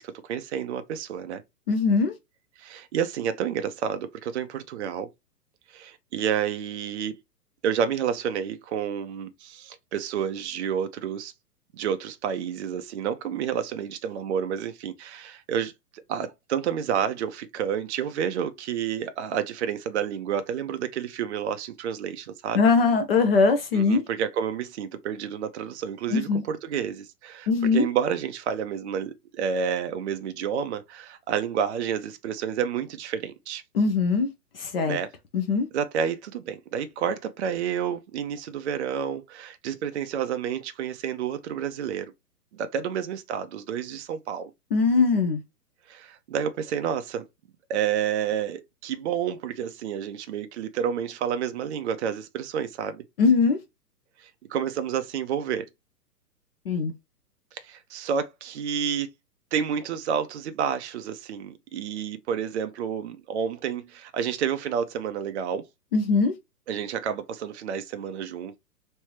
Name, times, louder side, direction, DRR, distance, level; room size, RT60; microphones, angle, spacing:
voice 1, 0.0-1.4 2.6-5.1 5.7-7.1 7.6-11.3 11.7-15.7 16.1-22.6 23.7-33.6 34.8-35.1 35.7-42.1 42.5-44.5 45.9-47.3 47.7-53.0 54.5-55.6 57.6-59.1 59.5-65.7 66.7-68.6, right 8 dB, 45° right, 0.5 m, -30 dB
voice 2, 1.7-2.1 22.5-24.0 26.1-26.4 27.5-27.9 33.7-34.3 34.6-35.0 35.3-35.7 44.7-45.4 53.2-53.6 56.7-56.9 65.9-66.3, left 4 dB, 40° left, 0.6 m, -21 dB
3.2 x 2.6 x 3.1 m
figure-of-eight pair, 115°, 48 cm